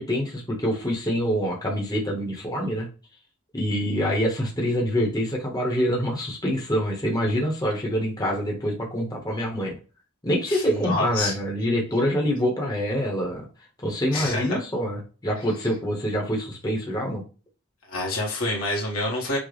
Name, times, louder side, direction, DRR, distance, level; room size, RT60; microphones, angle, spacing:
voice 1, 0.0-2.9 3.5-9.7 10.2-13.5 13.8-17.2, equal, 20° left, -1 dB, 1.0 m, -25 dB
voice 2, 10.5-11.3 14.1-14.6 17.9-19.4, left 2 dB, 80° left, -2 dB, 1.7 m, -27 dB
6.1 x 2.3 x 3.4 m, 0.34 s
head